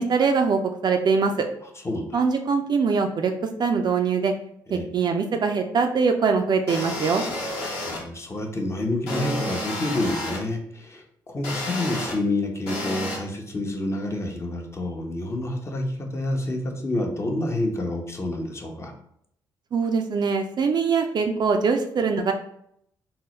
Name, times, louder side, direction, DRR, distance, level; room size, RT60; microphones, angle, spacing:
voice 1, 0.0-1.5 2.1-3.3 3.6-4.3 4.7-7.2 19.7-22.3, right 5 dB, 45° right, 5 dB, 0.4 m, -22 dB
voice 2, 1.8-2.2 4.7-4.9 7.9-18.9, left 1 dB, 30° left, 2 dB, 0.8 m, -28 dB
sound 1, 6.7-8.0 9.1-10.4 11.4-12.1 12.7-13.2, left 1 dB, 75° left, 1.0 m, -30 dB
3.8 x 2.0 x 3.0 m, 0.70 s
hypercardioid pair, 50°, 10 cm